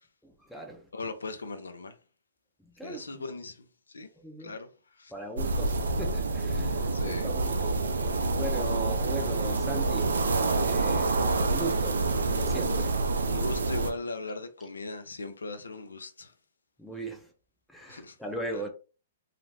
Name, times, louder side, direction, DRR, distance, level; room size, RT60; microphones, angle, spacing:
voice 1, 0.2-0.8 2.8-3.2 4.2-4.5 5.1-7.7 8.3-10.1 10.6-12.0 12.3-12.9 16.8-17.3 17.7-18.7, right 2 dB, 5° left, 0.5 m, -38 dB
voice 2, 0.9-2.0 2.8-4.1 4.4-5.1 6.9-7.3 12.8-16.3 17.9-18.2 18.5-18.7, left 3 dB, 90° left, 0.5 m, -39 dB
sound 1, 5.4-13.9, right 3 dB, 80° right, 0.4 m, -27 dB
2.4 x 2.1 x 3.1 m
hypercardioid pair, 125°, 0 cm